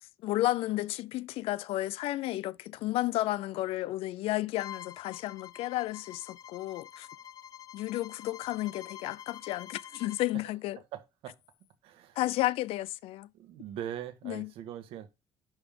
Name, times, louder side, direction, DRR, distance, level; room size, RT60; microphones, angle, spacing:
voice 1, 0.2-7.1 7.7-10.8 12.2-13.3 14.2-14.5, left 16 dB, 85° left, 0.4 m, -32 dB
Bowed string instrument, 4.5-10.3, left 10 dB, 40° left, 0.6 m, -47 dB
voice 2, 10.3-11.4 11.8-12.2 13.3-15.1, right 10 dB, 90° right, 1.4 m, -42 dB
10.5 x 3.6 x 5.2 m
cardioid pair, 140°, 10 cm